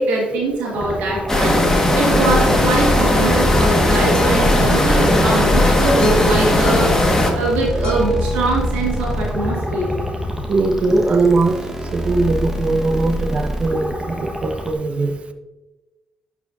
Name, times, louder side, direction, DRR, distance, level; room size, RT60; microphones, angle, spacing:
voice 1, 0.0-1.6 1.9-6.9 7.3-9.9, right 2 dB, 90° right, -3 dB, 2.0 m, -22 dB
sound 1, 0.7-14.7, equal, 10° right, 1.2 m, -27 dB
sound 2, 1.3-7.3, left 1 dB, 20° left, 1.5 m, -16 dB
Boat Water vehicle, 2.5-10.5, left 2 dB, 35° left, 0.9 m, -28 dB
voice 2, 10.5-11.6 11.9-15.1, right 3 dB, 45° right, 7 dB, 0.7 m, -20 dB
11.0 x 4.8 x 2.6 m, 1.1 s
supercardioid pair, 65°, 3 cm